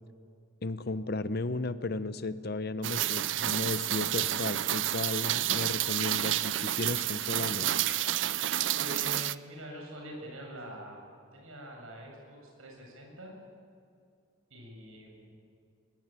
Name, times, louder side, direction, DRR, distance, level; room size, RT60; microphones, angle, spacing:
voice 1, 0.6-7.7, left 2 dB, 50° left, 13 dB, 0.8 m, -34 dB
Rain, 2.8-9.4, right 12 dB, 60° right, 0.5 m, -30 dB
voice 2, 8.7-11.0 11.3-13.3 14.5-15.3, equal, 80° right, 0 dB, 7.7 m, -44 dB
22.0 x 21.5 x 9.1 m, 2.4 s
head